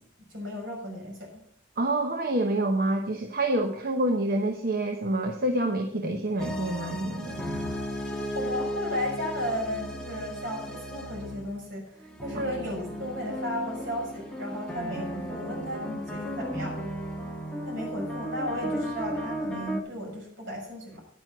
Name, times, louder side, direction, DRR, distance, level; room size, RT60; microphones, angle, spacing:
voice 1, 0.3-1.3 8.3-16.8 17.6-21.0, left 1 dB, 70° right, -1 dB, 6.2 m, -34 dB
voice 2, 1.8-7.4, right 1 dB, 50° right, 4 dB, 0.9 m, -27 dB
sound 1, 6.4-11.6 12.0-19.8, equal, 5° left, 1.6 m, -35 dB
10.5 x 9.2 x 6.0 m, 0.67 s
head